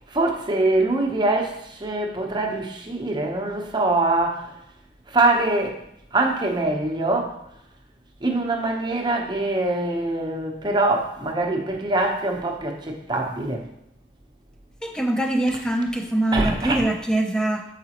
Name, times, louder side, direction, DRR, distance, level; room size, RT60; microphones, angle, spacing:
voice 1, 0.1-4.4 5.1-5.8 6.1-7.4 8.2-13.6 16.3-16.8, right 2 dB, 25° right, 1 dB, 0.8 m, -23 dB
voice 2, 14.8-17.7, right 1 dB, 5° left, 3 dB, 0.6 m, -23 dB
7.2 x 4.9 x 2.9 m, 0.79 s
head